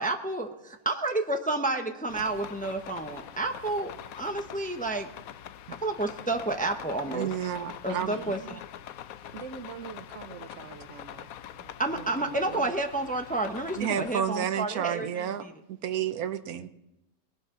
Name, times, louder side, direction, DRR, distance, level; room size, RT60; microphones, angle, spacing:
voice 1, 0.0-3.9 4.2-5.1 5.8-7.3 7.8-8.6 11.8-15.5, right 2 dB, 5° left, 5 dB, 0.7 m, -30 dB
sound 1, 2.1-14.1, left 10 dB, 75° left, 1.1 m, -44 dB
voice 2, 7.1-8.2 11.6-11.7 13.8-16.7, right 9 dB, 80° right, 11 dB, 1.3 m, -31 dB
voice 3, 7.9-8.6 9.3-11.3 11.9-12.8, right 7 dB, 60° right, 11 dB, 0.9 m, -43 dB
20.5 x 11.5 x 3.8 m, 0.91 s
omnidirectional pair, 1.5 m